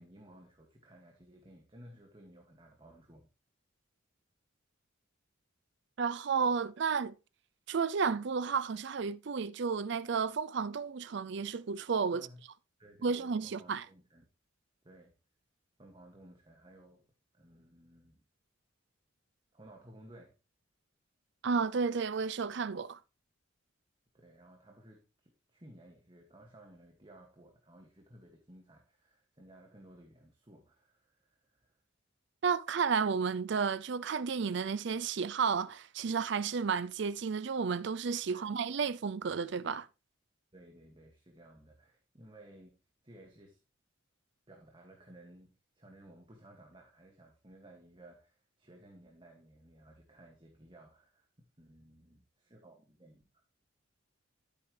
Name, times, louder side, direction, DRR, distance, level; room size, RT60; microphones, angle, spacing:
voice 1, 0.0-3.3 12.1-12.4 12.8-14.2 14.8-15.2 15.8-17.0 17.3-18.2 19.5-20.3 24.1-31.8 38.3-38.5 40.5-42.8 43.0-43.6 44.5-53.2, right 1 dB, 25° right, 2.1 m, -57 dB
voice 2, 6.0-7.1 7.7-12.3 13.0-13.8 21.4-23.0 32.4-39.9, right 5 dB, 60° right, 0.5 m, -32 dB
13.5 x 8.4 x 3.3 m
head